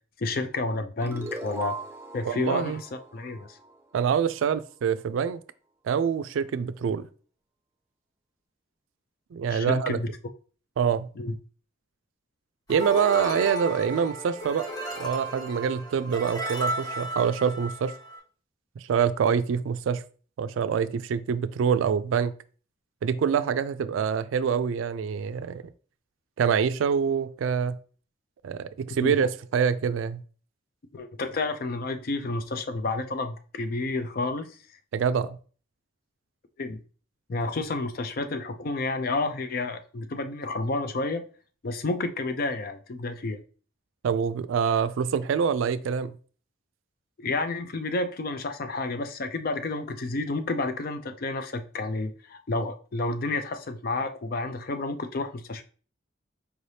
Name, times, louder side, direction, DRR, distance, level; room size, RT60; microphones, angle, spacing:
voice 1, 0.2-1.8 2.1-2.9 3.1-3.6 9.5-10.1 11.2-11.4 28.9-29.2 30.9-34.6 36.6-36.8 37.3-41.2 41.6-43.4 47.2-55.6, left 3 dB, 50° left, 0.4 m, -30 dB
sound 1, 1.0-4.2, right 2 dB, 15° right, 0.4 m, -39 dB
voice 2, 2.2-2.8 3.9-5.4 5.8-7.1 9.3-10.0 10.8-11.1 12.7-14.7 15.0-17.9 18.8-20.0 20.4-22.3 23.0-25.6 26.4-27.8 28.4-30.2 34.9-35.4 44.0-46.2, right 7 dB, 85° right, 0.3 m, -25 dB
sound 2, 12.7-18.2, right 1 dB, 20° left, 1.0 m, -34 dB
4.8 x 3.2 x 2.7 m
head